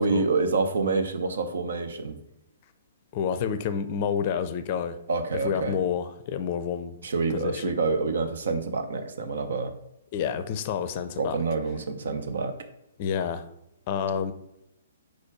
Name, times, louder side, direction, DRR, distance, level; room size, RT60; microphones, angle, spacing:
voice 1, 0.0-2.2 5.1-5.8 7.0-9.7 11.2-12.6, right 4 dB, 65° right, 8 dB, 0.7 m, -27 dB
voice 2, 3.1-5.0 5.4-7.0 7.3-7.7 10.1-11.4 13.0-13.4 13.9-14.3, left 7 dB, 40° left, 12 dB, 0.5 m, -29 dB
4.7 x 4.3 x 4.6 m, 0.84 s
figure-of-eight pair, 120°, 0 cm